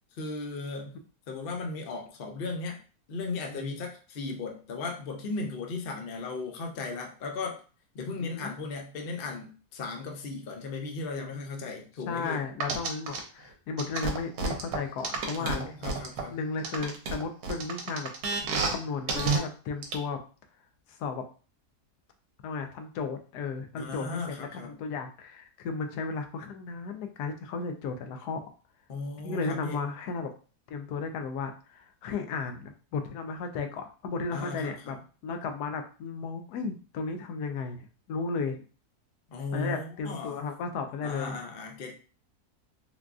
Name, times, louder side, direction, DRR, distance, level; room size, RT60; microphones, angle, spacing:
voice 1, 0.1-0.9 1.3-2.8 3.1-7.6 7.9-12.4 15.4-16.4 23.7-24.8 28.9-29.8 34.3-34.9 39.3-40.5 41.0-41.9, left 3 dB, 60° left, 2 dB, 0.6 m, -36 dB
voice 2, 8.2-8.5 12.1-15.7 16.3-18.1 18.7-20.2 21.0-21.2 22.4-28.4 29.2-30.3 30.7-35.0 35.2-38.6 39.5-41.3, left 4 dB, 80° left, 6 dB, 1.1 m, -34 dB
sound 1, 12.6-13.2 13.8-16.2 16.6-18.8 19.1-19.4 19.8-19.9, right 4 dB, 70° right, 1.1 m, -29 dB
3.8 x 2.3 x 2.3 m, 0.36 s
omnidirectional pair, 1.7 m